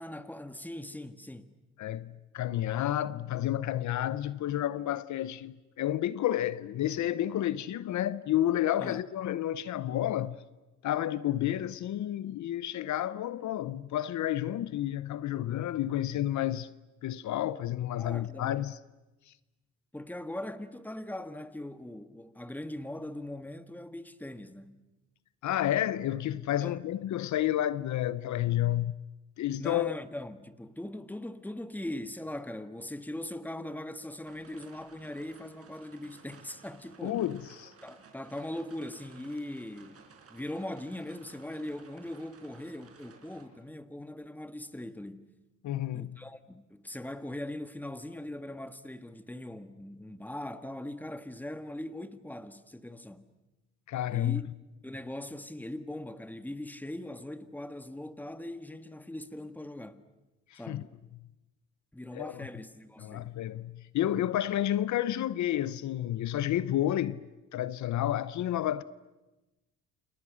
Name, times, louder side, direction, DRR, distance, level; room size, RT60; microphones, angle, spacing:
voice 1, 0.0-1.5 8.8-9.1 18.0-18.6 19.9-24.8 26.6-26.8 29.6-37.2 37.8-45.3 45.9-53.2 54.1-54.5 54.8-60.0 60.5-60.9 61.9-63.3, left 1 dB, 5° left, 1.7 m, -40 dB
voice 2, 1.8-10.4 10.8-16.7 17.0-18.8 25.4-28.9 29.4-30.0 37.0-37.7 45.6-46.2 53.9-54.4 60.5-60.8 62.1-62.5 63.0-67.2 67.5-68.8, left 12 dB, 70° left, 0.8 m, -30 dB
sound 1, 34.3-43.4, right 5 dB, 50° right, 5.1 m, -57 dB
29.0 x 28.5 x 6.4 m
cardioid pair, 90°, 30 cm